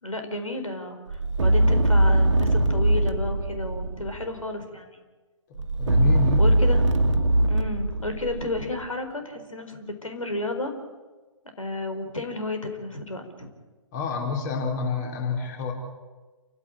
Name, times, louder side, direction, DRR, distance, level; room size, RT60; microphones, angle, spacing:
voice 1, 0.0-5.0 6.4-6.8 7.5-10.7 11.6-13.5, left 2 dB, 85° left, 6 dB, 4.6 m, -32 dB
sound 1, 1.1-4.3 5.5-8.8, right 1 dB, 65° right, 1.9 m, -21 dB
voice 2, 5.8-6.4 13.9-15.7, left 5 dB, 35° left, 2 dB, 4.6 m, -28 dB
29.0 x 16.0 x 9.0 m, 1.3 s
figure-of-eight pair, 135°, 17 cm